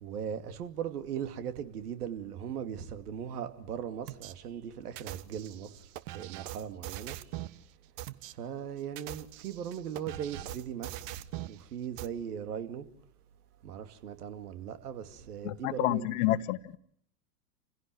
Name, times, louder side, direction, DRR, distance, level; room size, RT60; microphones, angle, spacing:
voice 1, 0.0-5.9 6.1-7.2 8.3-12.9 13.6-16.1, right 8 dB, 70° right, 2.6 m, -39 dB
sound 1, 4.1-4.3 5.0-7.6 8.0-8.3 8.8-11.6 12.0-12.1, right 15 dB, 55° right, 1.5 m, -42 dB
voice 2, 15.4-16.8, left 15 dB, 60° left, 1.3 m, -29 dB
29.0 x 16.5 x 7.8 m
hypercardioid pair, 95°, 47 cm